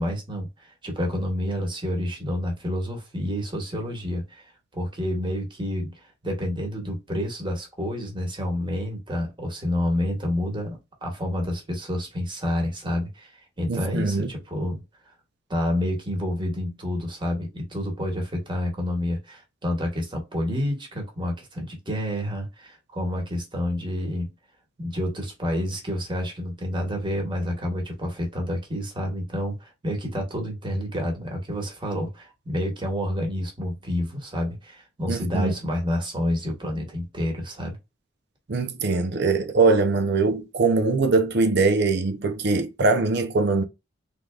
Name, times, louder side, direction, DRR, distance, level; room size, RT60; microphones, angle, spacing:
voice 1, 0.0-14.8 15.5-24.3 24.8-37.8, left 1 dB, 25° right, 1.4 m, -29 dB
voice 2, 13.7-14.3 35.1-35.5 38.5-43.6, right 3 dB, 60° right, 0.7 m, -22 dB
3.8 x 3.4 x 2.4 m
head